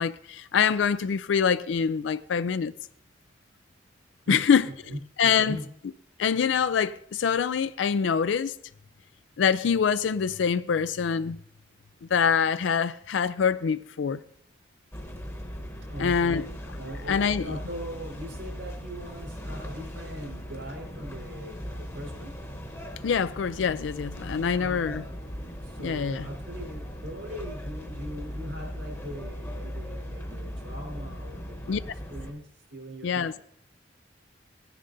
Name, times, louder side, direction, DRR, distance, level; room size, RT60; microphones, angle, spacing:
voice 1, 0.0-2.7 4.3-4.7 5.2-5.6 6.2-8.5 9.4-11.4 12.1-14.2 16.0-16.4 17.1-17.5 23.0-25.0 25.8-26.2 31.7-31.8 33.0-33.4, left 6 dB, 85° left, 0.4 m, -25 dB
voice 2, 4.2-5.6 15.8-22.3 24.6-25.1 25.6-31.8 32.1-33.4, equal, 80° right, 4.1 m, -40 dB
sound 1, 14.9-32.3, equal, 15° left, 1.0 m, -38 dB
17.5 x 10.0 x 2.6 m
head